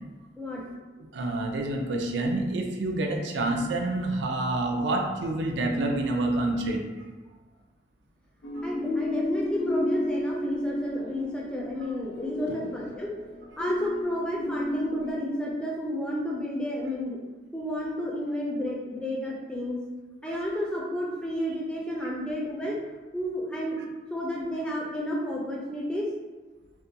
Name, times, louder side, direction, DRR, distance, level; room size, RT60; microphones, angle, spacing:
voice 1, 1.0-6.8 8.6-8.7 12.5-12.6 20.3-20.4 22.0-22.1, right 2 dB, 80° right, 1 dB, 0.4 m, -28 dB
sound 1, 8.4-15.1, left 1 dB, 75° left, 0.5 m, -32 dB
voice 2, 8.6-13.1 13.6-17.2 17.5-19.8 20.2-22.8 23.1-26.1, equal, 5° left, -4 dB, 0.3 m, -31 dB
2.3 x 2.2 x 2.7 m, 1.3 s
head